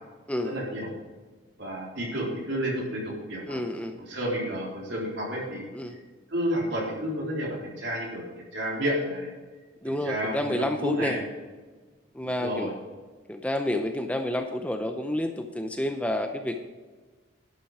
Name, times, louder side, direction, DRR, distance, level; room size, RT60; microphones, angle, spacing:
voice 1, 0.4-0.9 1.6-3.6 4.1-5.7 6.3-9.3 9.8-11.2 12.2-12.7, equal, 65° right, -3 dB, 3.9 m, -31 dB
voice 2, 3.5-4.0 5.7-6.0 9.8-11.2 12.1-12.7 13.3-16.6, left 1 dB, 5° left, 5 dB, 0.6 m, -29 dB
11.5 x 9.0 x 4.9 m, 1.3 s
head